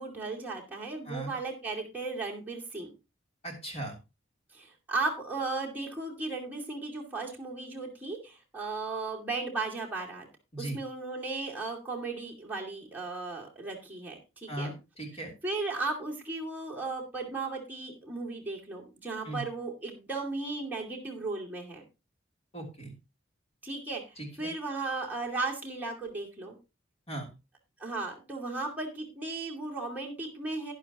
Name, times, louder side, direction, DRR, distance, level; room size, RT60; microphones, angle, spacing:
voice 1, 0.0-2.9 4.5-10.3 10.6-14.7 15.4-21.8 23.6-24.0 24.4-26.6 27.8-30.7, right 3 dB, 10° right, -3 dB, 2.4 m, -36 dB
voice 2, 3.4-4.0 10.5-10.8 14.5-15.3 19.2-19.4 22.5-22.9 24.2-24.5 27.1-27.3, right 1 dB, 30° left, 1 dB, 3.2 m, -38 dB
11.5 x 10.5 x 2.9 m, 0.27 s
head